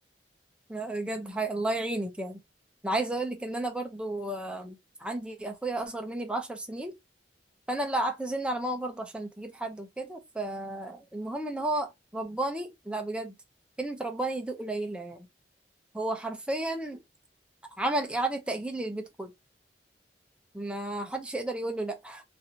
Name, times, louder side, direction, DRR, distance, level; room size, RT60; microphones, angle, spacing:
voice 1, 0.7-2.4 2.8-6.9 7.7-13.3 13.8-15.3 15.9-17.0 17.8-19.3 20.5-22.2, right 2 dB, 5° right, 0.5 m, -32 dB
3.1 x 2.5 x 2.6 m
head